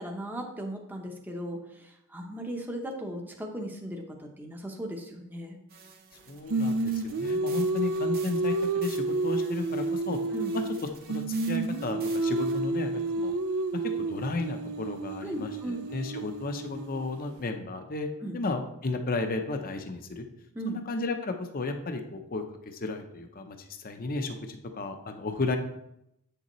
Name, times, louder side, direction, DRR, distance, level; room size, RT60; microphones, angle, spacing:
voice 1, 0.0-5.6 7.3-7.5 10.3-10.5 15.2-15.9 18.2-18.4 20.5-20.8, right 1 dB, 10° right, 2 dB, 0.7 m, -37 dB
sound 1, 5.7-12.6, right 6 dB, 45° right, 1.0 m, -50 dB
voice 2, 6.3-10.2 10.5-10.6 11.1-13.3 14.1-18.1 18.3-20.2 20.7-25.6, left 3 dB, 40° left, 6 dB, 0.7 m, -33 dB
Singing, 6.5-10.8 11.1-17.1, right 2 dB, 70° right, 0.4 m, -30 dB
8.4 x 6.7 x 3.0 m, 0.79 s
head